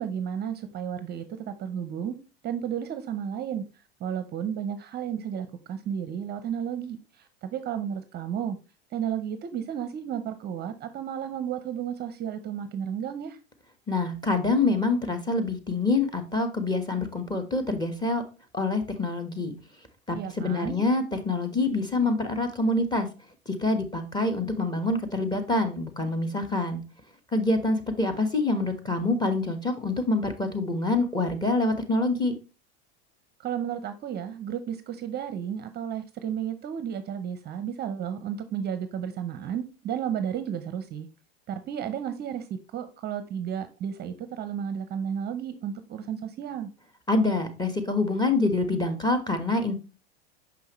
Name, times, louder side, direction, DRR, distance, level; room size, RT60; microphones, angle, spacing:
voice 1, 0.0-2.1 2.4-3.6 4.0-8.6 8.9-13.4 20.1-20.8 33.4-41.1 41.5-46.7, right 8 dB, 30° right, 0.6 m, -33 dB
voice 2, 13.9-18.2 18.5-19.5 20.1-23.1 23.5-26.8 27.3-32.3 47.1-49.8, left 2 dB, 15° left, 1.2 m, -26 dB
6.0 x 5.5 x 3.0 m
hypercardioid pair, 105°, 31 cm